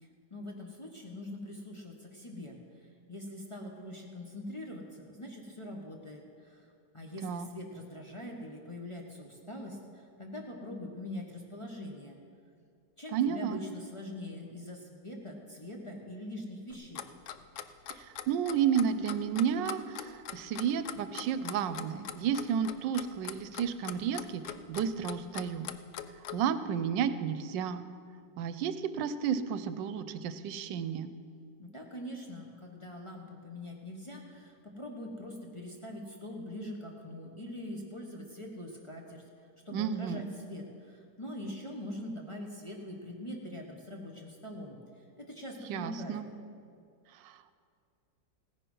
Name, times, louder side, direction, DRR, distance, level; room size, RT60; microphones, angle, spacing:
voice 1, 0.0-6.6 6.9-12.2 13.0-17.1 31.6-39.2 39.6-44.8 45.2-46.2, left 1 dB, 20° left, -1 dB, 1.0 m, -43 dB
voice 2, 13.1-13.6 17.9-25.7 26.3-27.8 28.4-31.1 39.7-40.2 45.7-46.3 47.2-47.5, right 8 dB, 85° right, 12 dB, 1.3 m, -32 dB
Clock, 16.7-26.4, left 10 dB, 80° left, 0.6 m, -41 dB
16.0 x 10.0 x 5.5 m, 2.3 s
omnidirectional pair, 1.9 m